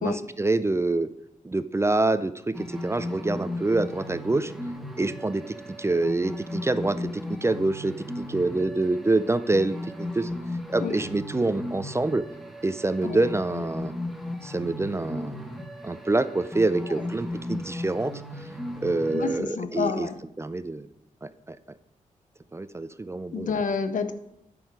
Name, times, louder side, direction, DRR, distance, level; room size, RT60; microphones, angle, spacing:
voice 1, 0.0-1.1 1.4-4.5 5.0-10.3 10.7-12.2 12.6-13.9 14.4-15.5 15.8-18.1 18.8-20.1 20.4-20.9 21.2-21.6 22.5-23.5, right 2 dB, 20° right, 14 dB, 0.4 m, -26 dB
sound 1, 2.5-19.4, left 1 dB, ahead, 1.3 m, -36 dB
voice 2, 19.1-20.2 23.3-24.1, left 5 dB, 70° left, 10 dB, 0.9 m, -29 dB
8.9 x 6.3 x 4.7 m, 0.77 s
cardioid pair, 75°, 14 cm